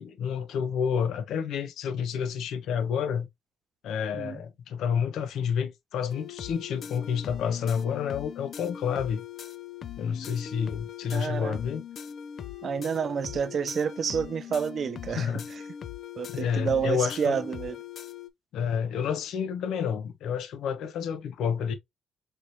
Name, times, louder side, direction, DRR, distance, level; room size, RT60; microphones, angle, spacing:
voice 1, 0.0-3.3 3.8-9.2 10.0-11.8 15.1-15.5 16.3-17.4 18.5-21.7, left 7 dB, 80° left, 0.9 m, -29 dB
sound 1, 6.1-18.3, left 9 dB, 60° left, 0.4 m, -41 dB
voice 2, 11.1-11.6 12.6-15.6 16.2-17.8, right 6 dB, 50° right, 0.3 m, -29 dB
4.8 x 3.2 x 2.7 m
cardioid pair, 90°, 0 cm